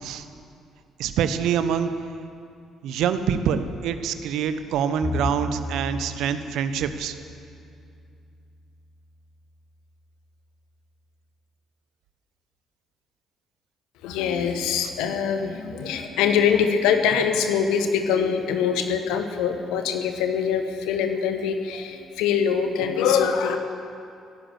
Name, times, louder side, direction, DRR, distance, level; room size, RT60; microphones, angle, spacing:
voice 1, 1.0-1.9 2.8-7.1, right 8 dB, 65° right, 11 dB, 0.8 m, -25 dB
Bowed string instrument, 5.0-8.5, left 2 dB, 45° left, 5.2 m, -35 dB
voice 2, 14.0-23.6, left 7 dB, 70° left, 7 dB, 1.2 m, -23 dB
16.0 x 11.0 x 7.8 m, 2.5 s
hypercardioid pair, 45°, 0 cm